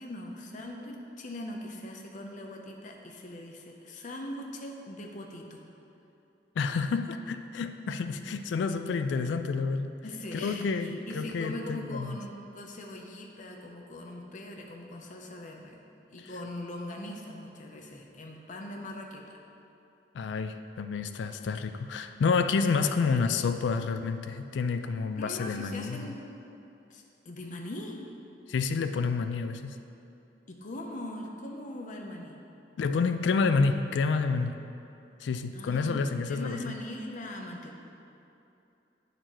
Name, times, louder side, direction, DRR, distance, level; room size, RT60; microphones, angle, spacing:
voice 1, 0.0-5.6 10.0-15.8 16.1-19.4 22.7-23.5 25.1-26.2 26.9-28.0 30.5-32.4 35.5-36.0 36.3-37.8, left 1 dB, 45° left, 1 dB, 0.6 m, -41 dB
voice 2, 6.6-9.9 10.3-10.9 11.1-12.2 20.1-26.1 28.5-29.8 32.8-34.6 35.2-36.6, left 4 dB, 85° left, 9 dB, 0.3 m, -29 dB
8.7 x 6.7 x 3.0 m, 2.7 s
head